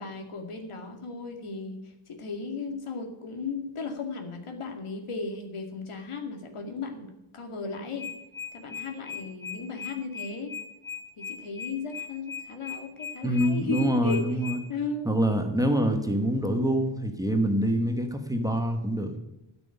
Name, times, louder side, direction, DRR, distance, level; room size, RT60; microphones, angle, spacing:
voice 1, 0.0-8.1 8.5-10.5 11.2-14.2 14.7-15.1, left 4 dB, 85° left, 5 dB, 2.3 m, -36 dB
sound 1, 8.0-14.6, left 6 dB, 25° left, 2.3 m, -37 dB
voice 2, 13.2-14.6 15.0-19.1, equal, 5° right, 4 dB, 1.4 m, -25 dB
13.5 x 6.3 x 9.8 m, 0.92 s
wide cardioid pair, 175°, 49 cm